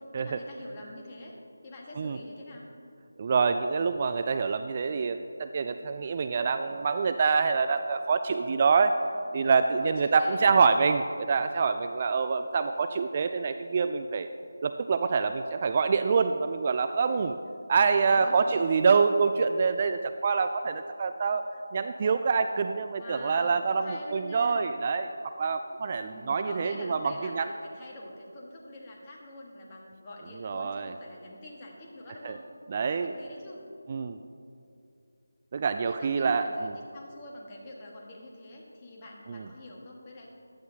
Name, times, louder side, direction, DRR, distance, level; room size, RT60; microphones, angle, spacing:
voice 1, 0.0-1.3 1.6-2.7 9.3-9.5 9.8-10.6 17.9-18.5 18.9-19.0 23.0-24.6 26.0-32.4 32.9-33.6 35.8-40.3, left 1 dB, 20° left, -3 dB, 1.6 m, -45 dB
voice 2, 3.2-9.0 9.3-14.3 14.6-17.4 17.7-21.5 21.7-27.5 30.4-30.9 32.2-32.4 32.7-33.1 33.9-34.2 35.5-36.7 39.3-39.5, right 5 dB, 35° right, 9 dB, 0.3 m, -26 dB
15.0 x 11.5 x 2.9 m, 2.5 s
figure-of-eight pair, 160°, 0 cm